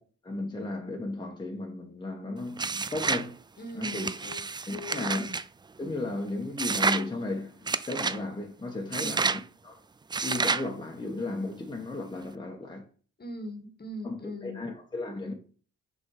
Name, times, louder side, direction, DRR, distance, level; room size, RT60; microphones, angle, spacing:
voice 1, 0.2-3.4 3.7-4.1 4.7-5.2 5.8-9.8 10.2-12.8 14.0-15.3, left 2 dB, 15° left, 1.4 m, -35 dB
sound 1, 2.6-3.3 3.8-5.4 6.6-7.1 7.7-8.2 8.9-9.4 10.1-10.7, right 4 dB, 15° right, 0.3 m, -29 dB
voice 2, 3.6-4.4 4.7-5.3 8.9-9.2 13.2-14.6, left 1 dB, 30° left, 1.7 m, -40 dB
6.2 x 5.5 x 4.8 m
cardioid pair, 90°, 30 cm